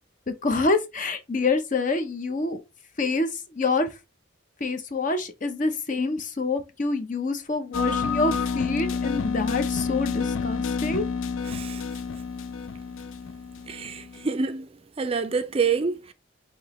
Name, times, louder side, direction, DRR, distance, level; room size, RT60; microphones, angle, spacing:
voice 1, 0.3-2.6 3.0-4.0 4.6-11.0, left 3 dB, 40° left, 0.7 m, -27 dB
sound 1, 7.7-14.3, left 5 dB, 85° left, 0.4 m, -29 dB
voice 2, 11.5-11.8 13.7-14.7 15.0-16.1, right 5 dB, 30° right, 0.4 m, -27 dB
5.9 x 2.9 x 3.0 m
head